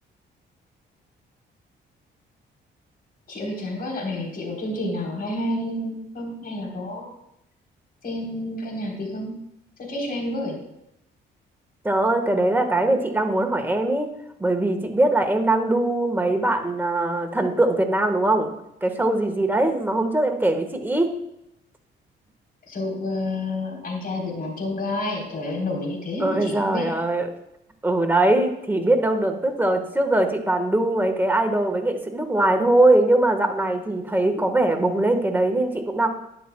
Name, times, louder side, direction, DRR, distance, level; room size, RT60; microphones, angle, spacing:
voice 1, 3.3-7.1 8.0-9.3 9.8-10.6 22.7-26.9, left 1 dB, 50° left, 0 dB, 3.8 m, -29 dB
voice 2, 11.8-14.1 14.4-18.5 18.8-21.1 26.2-27.3 27.8-36.1, right 2 dB, 10° right, 4 dB, 1.5 m, -21 dB
11.5 x 10.5 x 2.3 m, 0.81 s
cardioid pair, 90°, 20 cm